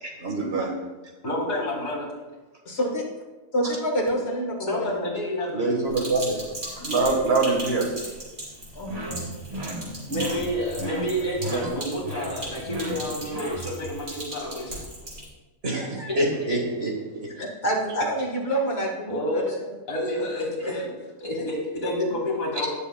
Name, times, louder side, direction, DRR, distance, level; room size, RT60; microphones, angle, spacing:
voice 1, 0.0-0.7 5.5-6.5 6.8-7.8 11.5-11.6 15.6-17.3, right 3 dB, 45° right, 0 dB, 1.8 m, -25 dB
voice 2, 1.2-2.1 4.7-5.7 10.1-14.8 16.4-16.6 18.5-18.6 19.1-19.6 19.9-20.9 21.2-22.7, left 1 dB, 80° left, -1 dB, 2.5 m, -29 dB
voice 3, 2.7-3.0 3.5-4.9 8.8-9.3 17.4-19.7 20.6-20.8 21.3-21.4, right 1 dB, 50° left, 0 dB, 1.8 m, -28 dB
Sink (filling or washing), 5.9-15.2, right 1 dB, 70° right, 3.6 m, -38 dB
sound 1, 8.8-14.0, equal, 30° right, 1.3 m, -35 dB
17.5 x 6.8 x 2.3 m, 1.2 s
omnidirectional pair, 1.4 m